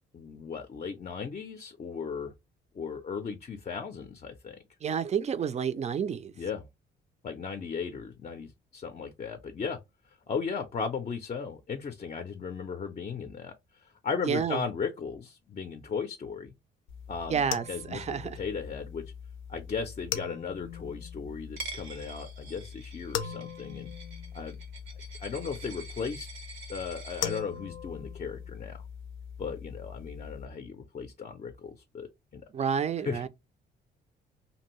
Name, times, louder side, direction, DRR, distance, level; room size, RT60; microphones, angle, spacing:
voice 1, 0.1-2.3 2.7-4.6 6.4-6.6 7.2-9.8 10.3-13.5 13.8-16.5 17.1-18.0 18.3-19.0 19.5-23.9 24.3-24.6 25.2-26.3 26.7-28.8 29.4-32.1 32.3-32.4 33.0-33.3, left 5 dB, 35° left, 0.5 m, -36 dB
voice 2, 4.8-6.3 14.2-14.6 17.3-18.4 32.5-33.3, right 7 dB, 35° right, 0.4 m, -30 dB
sound 1, 16.9-30.5, left 8 dB, 85° left, 0.5 m, -41 dB
Coin (dropping), 21.6-27.4, right 3 dB, 80° right, 0.7 m, -46 dB
2.7 x 2.6 x 3.0 m
cardioid pair, 90°, 20 cm